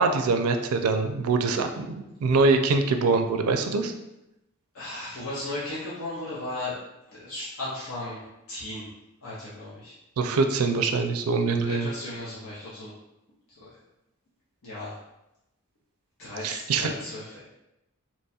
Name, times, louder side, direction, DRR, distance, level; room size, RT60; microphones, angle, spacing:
voice 1, 0.0-3.9 10.2-11.9 16.4-16.9, right 4 dB, 80° right, 6 dB, 0.4 m, -24 dB
voice 2, 4.7-6.8 7.1-8.9 9.2-9.9 11.6-12.9 13.6-13.7 14.6-14.9 16.2-17.5, left 2 dB, 65° left, -8 dB, 0.8 m, -36 dB
3.0 x 2.3 x 4.2 m, 0.92 s
head